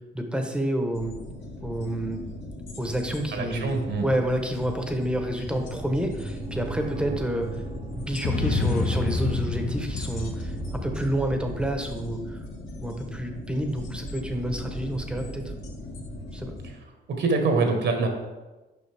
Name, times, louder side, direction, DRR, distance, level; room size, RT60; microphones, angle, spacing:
voice 1, 0.1-1.2 1.6-2.2 2.8-3.7 4.0-7.5 8.0-12.4 12.8-15.4 16.3-16.5, right 1 dB, 5° right, 4 dB, 0.9 m, -29 dB
sound 1, 0.9-16.7, left 2 dB, 75° left, 1.6 m, -39 dB
voice 2, 3.3-4.1 17.2-18.1, right 3 dB, 65° right, 3 dB, 1.3 m, -24 dB
sound 2, 5.1-16.4, right 3 dB, 25° right, 0.8 m, -40 dB
Ominous Thumps Amplified, 8.2-11.8, left 3 dB, 40° left, 0.8 m, -28 dB
6.9 x 5.4 x 3.4 m, 1.1 s
cardioid pair, 90°, 20 cm